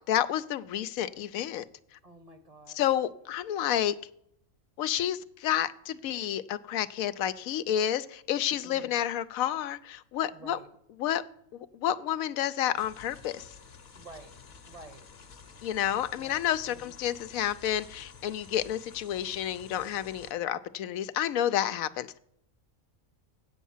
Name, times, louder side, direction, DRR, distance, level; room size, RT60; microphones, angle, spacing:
voice 1, 0.1-1.6 2.7-4.0 4.8-10.6 11.0-11.2 11.5-13.5 15.6-22.2, left 11 dB, 80° left, 1.0 m, -30 dB
voice 2, 2.0-2.9 8.6-8.9 10.3-10.7 13.9-14.4 14.6-15.1 16.2-16.9, right 2 dB, 30° right, 0.9 m, -50 dB
sound 1, 12.8-20.3, left 5 dB, 50° left, 1.1 m, -51 dB
8.4 x 8.3 x 7.1 m
omnidirectional pair, 1.4 m